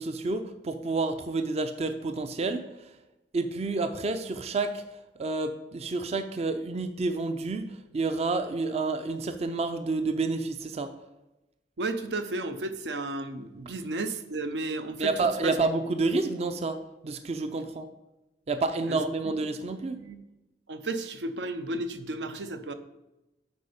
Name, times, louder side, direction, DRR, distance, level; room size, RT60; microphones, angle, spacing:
voice 1, 0.0-2.9 3.3-4.8 5.2-10.9 15.0-17.9 18.5-20.0, right 3 dB, 35° right, 9 dB, 0.4 m, -29 dB
voice 2, 11.8-15.1 15.4-15.5 18.9-19.0 19.9-20.2 20.7-22.7, right 2 dB, 80° right, 9 dB, 0.6 m, -33 dB
8.2 x 4.7 x 5.1 m, 0.98 s
head